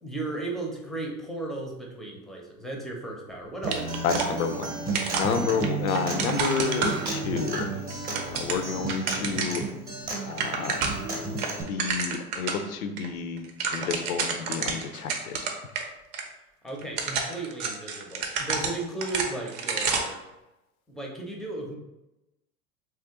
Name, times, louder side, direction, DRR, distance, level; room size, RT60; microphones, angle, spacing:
voice 1, 0.0-4.2 16.6-20.2 20.9-21.8, right 2 dB, ahead, 0 dB, 0.5 m, -35 dB
Acoustic guitar, 3.6-11.6, right 3 dB, 20° right, 0.9 m, -33 dB
sound 1, 3.7-4.7 4.9-7.4 7.9-9.7 10.0-10.1 10.3-11.1 11.4-12.6 13.0-13.1 13.4-15.8 16.1-16.2 16.8-20.2, right 5 dB, 55° right, 0.7 m, -30 dB
voice 2, 4.0-4.7 5.2-7.7 8.3-9.6 10.2-10.9 11.7-13.5 13.7-15.5, left 5 dB, 80° left, 8 dB, 0.5 m, -30 dB
3.1 x 2.4 x 2.9 m, 0.95 s
hypercardioid pair, 80°, 42 cm